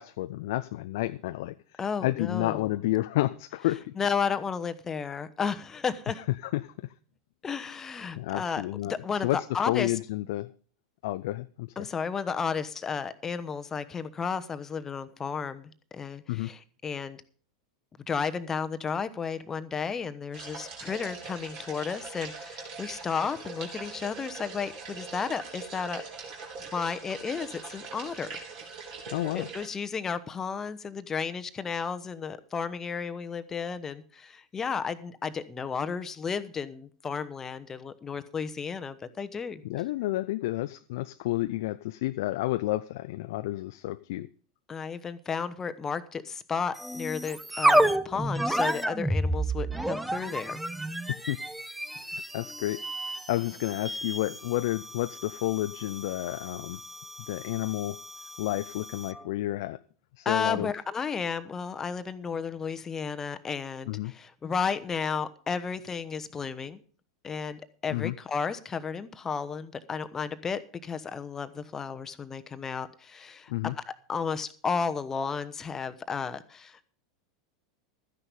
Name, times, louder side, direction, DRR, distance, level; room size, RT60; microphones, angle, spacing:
voice 1, 0.0-1.5 2.0-3.9 6.5-6.9 8.1-8.9 9.2-10.5 11.0-11.9 16.3-16.5 29.1-29.5 39.6-44.3 51.1-51.4 52.1-56.8 57.3-58.0 58.4-59.8 60.2-60.7 63.9-64.1 67.9-68.1 73.5-73.7, left 16 dB, 55° left, 11 dB, 0.5 m, -30 dB
voice 2, 1.8-2.7 4.0-6.2 7.4-10.0 11.8-17.2 18.1-26.0 26.6-28.4 29.3-39.6 44.7-50.6 60.2-66.8 67.2-76.8, left 6 dB, 20° left, 11 dB, 1.0 m, -33 dB
sound 1, 20.3-29.7, right 4 dB, 45° right, 3.6 m, -42 dB
sound 2, 46.7-59.2, right 1 dB, 5° right, 0.8 m, -31 dB
13.5 x 10.0 x 5.3 m, 0.41 s
figure-of-eight pair, 85°, 2 cm